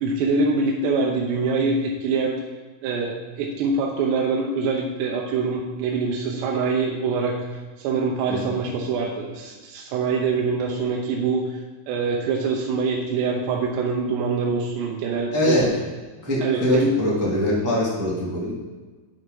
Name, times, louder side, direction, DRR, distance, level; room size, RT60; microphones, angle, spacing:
voice 1, 0.0-2.4 2.8-7.4 7.8-11.6 11.9-15.7 16.4-17.0, right 4 dB, 80° right, -1 dB, 3.0 m, -24 dB
voice 2, 15.3-15.7 16.2-18.5, left 1 dB, 10° right, -6 dB, 0.7 m, -23 dB
8.5 x 7.2 x 5.4 m, 1.3 s
omnidirectional pair, 5.0 m